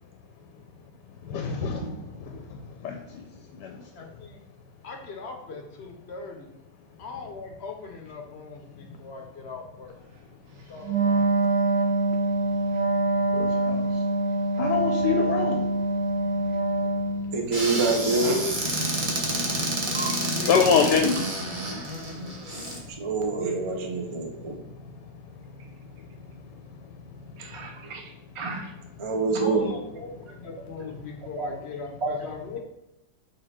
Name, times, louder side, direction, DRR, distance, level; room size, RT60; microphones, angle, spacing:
voice 1, 1.3-1.9 2.2-2.4 2.8-3.2 3.6-3.8 13.3-13.9 14.6-15.7 20.5-21.2, left 6 dB, 75° left, 4 dB, 1.1 m, -24 dB
voice 2, 3.9-4.4 4.8-6.5 7.0-10.0 10.7-11.6 20.3-20.6 21.6-22.8 29.4-32.6, left 4 dB, 55° left, 2 dB, 0.7 m, -40 dB
Wind instrument woodwind instrument, 10.8-17.3, right 2 dB, 75° right, 1.5 m, -25 dB
voice 3, 17.3-18.8 19.2-19.3 19.9-20.3 23.0-24.6 27.4-28.7 29.0-29.8 31.4-31.5 32.0-32.2, right 3 dB, 50° right, 2 dB, 0.3 m, -27 dB
Squeak / Cupboard open or close, 17.5-22.8, right 1 dB, 25° right, 0.9 m, -29 dB
6.6 x 3.3 x 4.3 m, 0.93 s
omnidirectional pair, 2.0 m